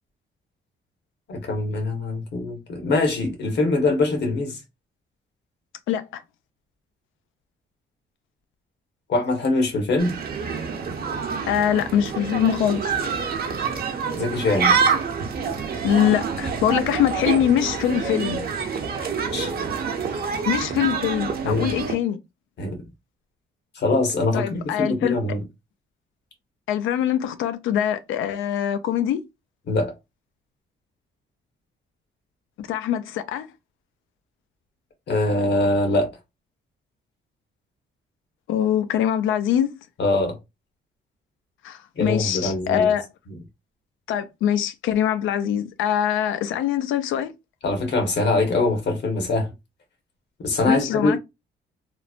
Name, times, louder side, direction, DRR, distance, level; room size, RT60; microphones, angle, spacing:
voice 1, 1.3-4.6 9.1-10.2 14.1-14.7 19.3-19.5 20.2-20.4 21.4-21.7 22.6-22.8 23.7-25.4 29.7-29.9 35.1-36.1 40.0-40.4 42.0-42.9 47.6-49.5 50.4-51.2, left 2 dB, 60° left, 1.1 m, -23 dB
voice 2, 5.9-6.2 11.5-12.9 15.8-18.4 20.5-22.2 24.3-25.2 26.7-29.2 32.6-33.5 38.5-39.7 41.6-43.0 44.1-47.3 50.7-51.2, left 10 dB, 80° left, 0.4 m, -23 dB
sound 1, 10.0-22.0, right 5 dB, 50° right, 0.7 m, -27 dB
3.0 x 2.1 x 2.4 m
cardioid pair, 90°, 20 cm